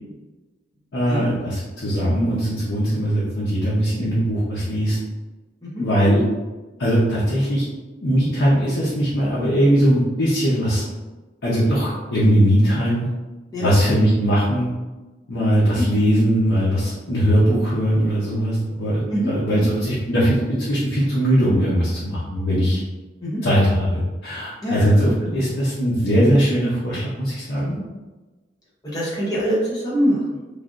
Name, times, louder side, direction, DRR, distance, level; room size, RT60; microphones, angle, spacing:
voice 1, 0.9-5.0 5.7-6.2 6.8-7.6 8.0-10.8 11.4-13.1 13.6-14.7 15.3-22.8 23.4-27.8, equal, 85° left, -8 dB, 0.8 m, -20 dB
voice 2, 19.1-19.7 23.2-23.4 24.6-24.9 28.8-30.4, equal, 20° left, -8 dB, 0.7 m, -24 dB
3.2 x 2.4 x 2.4 m, 1.2 s
head